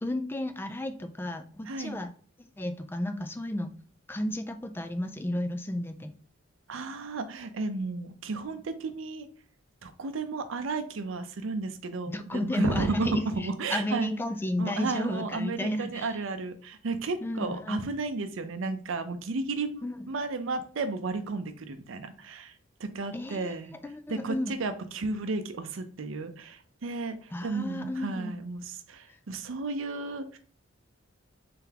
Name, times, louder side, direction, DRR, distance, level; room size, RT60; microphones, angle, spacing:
voice 1, 0.0-2.1 2.4-3.7 4.1-6.1 12.1-16.2 17.2-17.8 19.8-20.0 23.1-23.6 23.8-24.5 27.3-28.3 29.1-29.2, left 1 dB, 10° left, 9 dB, 0.3 m, -32 dB
voice 2, 1.7-2.0 6.7-9.3 9.8-14.1 14.6-22.5 22.8-23.7 24.1-30.4, right 3 dB, 70° right, 9 dB, 0.5 m, -33 dB
3.8 x 3.3 x 2.8 m, 0.43 s
head